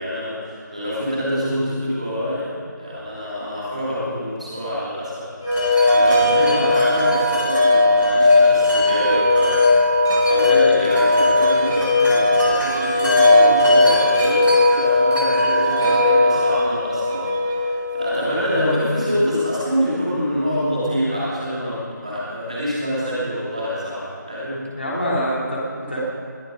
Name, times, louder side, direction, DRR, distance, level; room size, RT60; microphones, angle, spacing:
voice 1, 0.0-5.3 5.9-9.7 10.2-24.7, equal, 20° right, -8 dB, 3.0 m, -26 dB
Wind chime, 5.4-19.4, left 2 dB, 10° left, 4.0 m, -17 dB
voice 2, 6.2-6.6 18.5-18.8 24.7-26.0, equal, 35° left, -6 dB, 3.6 m, -26 dB
21.0 x 9.4 x 5.3 m, 2.4 s
figure-of-eight pair, 180°, 11 cm